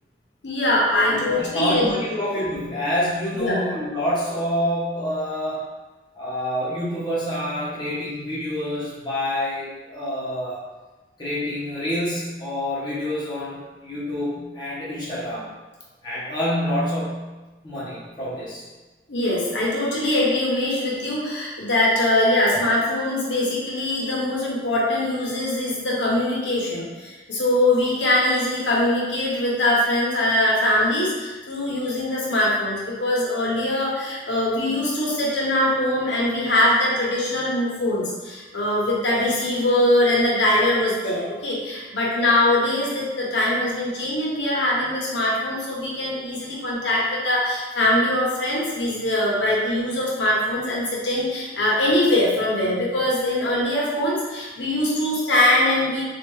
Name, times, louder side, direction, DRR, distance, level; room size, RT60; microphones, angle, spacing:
voice 1, 0.4-1.9 3.3-3.6 19.1-56.0, left 1 dB, 85° left, -4 dB, 0.9 m, -22 dB
voice 2, 1.1-5.6 6.1-10.6 11.2-15.5 16.0-17.3 17.6-18.6, left 1 dB, 25° left, -9 dB, 1.0 m, -27 dB
3.4 x 2.4 x 3.1 m, 1.2 s
head